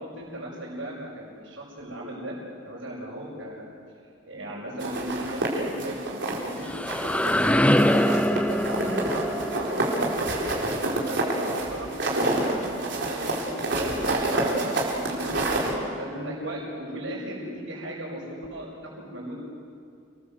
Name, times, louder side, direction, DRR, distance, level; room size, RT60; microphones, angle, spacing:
voice 1, 0.0-2.4 2.6-3.7 4.2-6.7 7.4-15.3 15.7-19.4, right 1 dB, 80° right, -8 dB, 6.6 m, -37 dB
sound 1, 4.8-6.5 6.9-7.5 7.8-15.7, right 2 dB, 60° right, 4.3 m, -28 dB
sound 2, 6.3-12.1, left 1 dB, 5° left, 0.6 m, -25 dB
29.5 x 20.0 x 7.9 m, 2.3 s
head